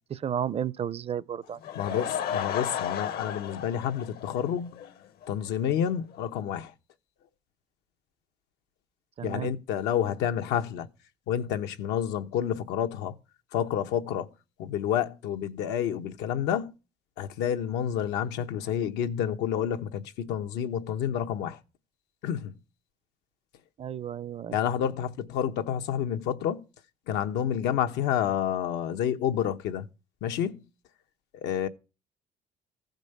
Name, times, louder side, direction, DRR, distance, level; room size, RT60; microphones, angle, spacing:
voice 1, 0.0-1.6 1.9-2.1 9.2-9.5 23.8-24.6, right 9 dB, 35° right, 0.5 m, -33 dB
Laughter / Crowd, 1.4-4.9 5.2-5.3 5.9-6.0 6.1-6.2, left 8 dB, 70° left, 1.0 m, -34 dB
voice 2, 1.7-4.8 5.3-6.7 9.2-10.9 11.3-13.1 13.5-14.3 14.6-16.7 17.2-21.6 22.2-22.6 24.5-26.6 27.1-29.9 30.2-30.7 31.4-31.7, left 9 dB, 85° left, 1.0 m, -29 dB
14.5 x 5.3 x 6.5 m
cardioid pair, 110°, 17 cm